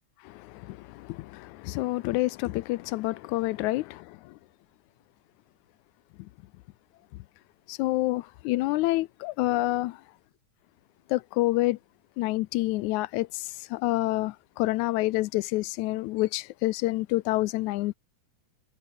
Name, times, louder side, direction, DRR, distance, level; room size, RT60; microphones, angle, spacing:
voice 1, 0.3-4.2 7.7-10.0 11.1-11.8 12.2-17.9, left 19 dB, 80° left, 1.8 m, -28 dB
omnidirectional pair, 3.8 m